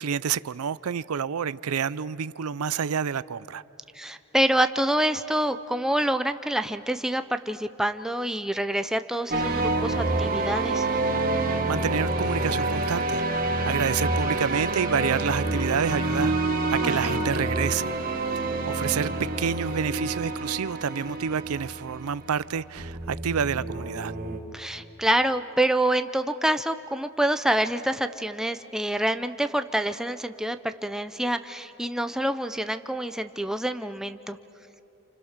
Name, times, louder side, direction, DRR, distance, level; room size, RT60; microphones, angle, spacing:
voice 1, 0.0-3.6 11.7-13.2 13.7-17.9 18.3-24.1, right 7 dB, 85° right, 0.5 m, -28 dB
voice 2, 3.9-10.9 16.8-17.2 24.5-34.4, right 1 dB, ahead, 0.6 m, -27 dB
sound 1, 9.3-24.4, right 2 dB, 45° right, 2.1 m, -28 dB
29.0 x 28.0 x 6.6 m
head